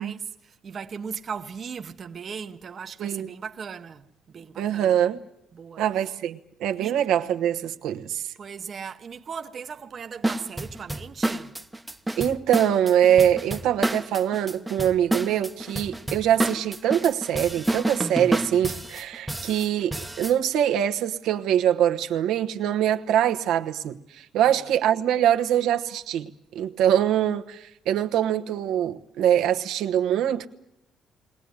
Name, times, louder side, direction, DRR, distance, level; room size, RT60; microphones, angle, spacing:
voice 1, 0.0-5.0 5.5-6.1 6.7-7.0 8.4-11.6 24.4-24.5, right 6 dB, 35° right, 0.9 m, -38 dB
voice 2, 4.6-5.2 5.8-8.2 12.2-26.3 26.5-30.5, right 10 dB, 80° right, 1.2 m, -23 dB
sound 1, 10.2-20.4, right 1 dB, 10° right, 0.8 m, -29 dB
21.5 x 18.5 x 9.7 m
cardioid pair, 145°, 0 cm